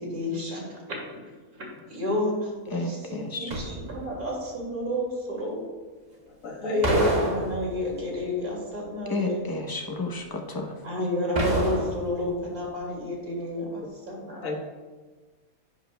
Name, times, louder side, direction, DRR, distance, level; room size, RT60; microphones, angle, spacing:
voice 1, 0.0-5.6 6.6-9.5 10.8-14.4, left 1 dB, 85° right, -2 dB, 2.8 m, -30 dB
voice 2, 2.7-3.5 9.1-10.7, left 2 dB, 20° left, 2 dB, 0.7 m, -31 dB
sound 1, 3.5-4.3 6.8-8.1 11.4-12.4 12.7-12.8, right 1 dB, 30° right, 1.3 m, -28 dB
voice 3, 6.4-7.0 14.4-14.6, left 3 dB, 65° left, 2 dB, 1.6 m, -33 dB
10.5 x 8.3 x 2.2 m, 1.3 s
omnidirectional pair, 1.5 m